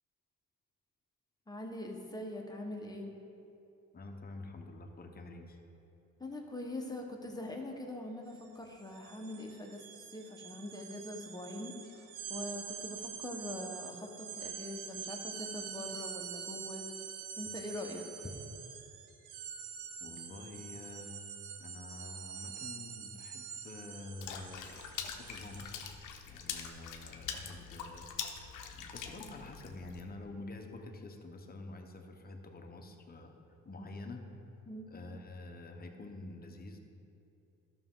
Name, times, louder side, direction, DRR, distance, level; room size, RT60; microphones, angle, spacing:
voice 1, 1.5-3.2 6.2-17.1 17.4-18.3 34.7-34.9, left 1 dB, 15° left, 1 dB, 1.2 m, -43 dB
voice 2, 3.9-5.6 20.0-21.1 21.6-25.8 26.3-28.1 28.7-34.3 34.9-36.8, left 2 dB, 30° left, 3 dB, 1.0 m, -48 dB
sound 1, 8.3-8.4 8.7-26.0, right 7 dB, 90° right, 0.8 m, -46 dB
Water / Splash splatter, 24.2-30.0, left 7 dB, 85° left, 0.8 m, -44 dB
12.5 x 6.0 x 3.8 m, 2.8 s
cardioid pair, 90°, 30 cm